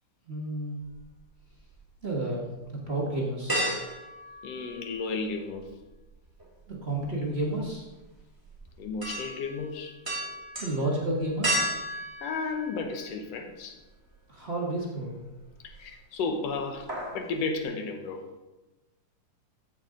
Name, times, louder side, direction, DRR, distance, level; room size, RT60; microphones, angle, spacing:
voice 1, 0.3-0.8 2.0-3.7 6.7-7.9 10.6-11.7 14.3-15.2, right 1 dB, 35° right, -3 dB, 1.0 m, -31 dB
sound 1, 0.9-1.8 2.3-2.4 3.5-5.2 5.5-13.4 13.8-13.9 15.4-15.9 16.2-16.4 16.7-17.3 17.6-17.7, right 1 dB, 10° right, 1.9 m, -34 dB
voice 2, 4.4-5.7 8.8-9.9 12.2-13.8 15.6-18.2, left 4 dB, 65° left, 5 dB, 1.8 m, -33 dB
14.5 x 7.1 x 3.8 m, 1.1 s
omnidirectional pair, 3.6 m